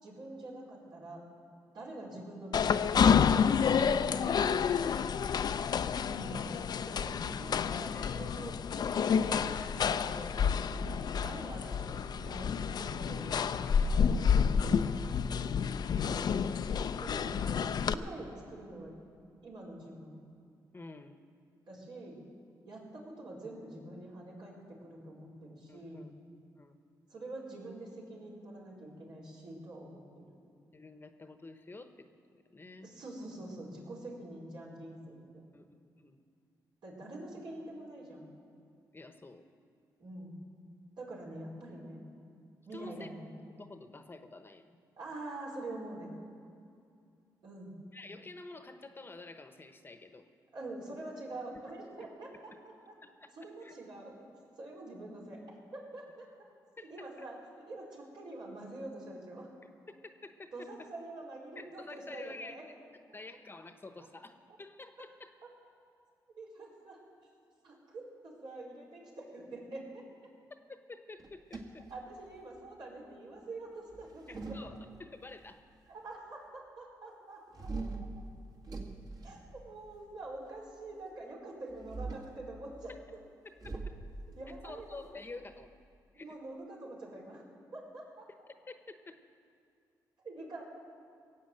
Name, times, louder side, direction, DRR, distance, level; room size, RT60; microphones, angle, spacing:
voice 1, 0.0-1.2 1.7-3.6 6.0-6.5 6.9-10.3 11.2-14.0 16.0-16.3 17.0-18.9 19.4-20.2 21.7-22.2 22.6-26.1 27.1-30.2 32.8-35.4 36.8-38.3 40.0-40.4 41.0-42.1 42.7-43.3 45.0-46.1 47.4-47.7 50.5-52.7 53.3-54.3 54.6-55.4 55.7-56.3 56.9-57.4 57.7-59.5 60.5-62.6 66.4-67.0 67.6-70.0 71.9-74.6 75.9-77.7 79.2-82.9 84.4-85.1 86.2-87.4 87.7-88.3 90.2-90.6, right 2 dB, 70° right, -3 dB, 4.4 m, -45 dB
sound 1, 2.5-17.9, left 7 dB, 60° left, 0.5 m, -29 dB
voice 2, 3.9-5.1 7.9-8.3 10.7-11.2 13.7-15.5 20.7-21.2 25.7-26.1 26.6-26.7 30.7-32.1 32.5-32.9 35.5-35.7 36.0-36.2 38.9-39.5 42.7-43.1 43.6-44.8 47.9-50.3 53.0-53.3 53.6-53.8 56.8-57.3 60.2-60.9 61.6-62.6 63.1-65.3 70.7-71.9 74.3-75.6 84.6-85.7 86.1-86.4 88.7-89.2, left 3 dB, 25° left, 8 dB, 1.0 m, -49 dB
sound 2, 71.2-72.6 73.9-75.3 77.5-80.1 81.7-82.4 83.6-86.0, right 3 dB, 50° right, 2.0 m, -43 dB
18.0 x 8.4 x 7.8 m, 2.4 s
cardioid pair, 75°, 8 cm